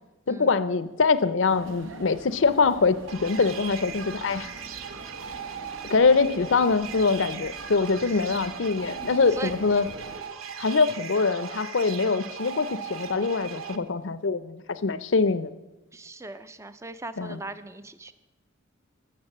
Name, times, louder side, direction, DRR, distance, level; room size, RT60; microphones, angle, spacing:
voice 1, 0.3-4.5 5.9-9.9 10.6-15.5 17.2-17.4, left 4 dB, 65° left, 15 dB, 0.6 m, -23 dB
sound 1, 1.5-10.2, right 1 dB, 70° right, 1.1 m, -46 dB
sound 2, 3.1-13.8, right 7 dB, 85° right, 0.8 m, -38 dB
voice 2, 15.9-18.1, right 3 dB, 15° right, 13 dB, 0.5 m, -39 dB
13.5 x 7.0 x 7.2 m, 1.0 s
head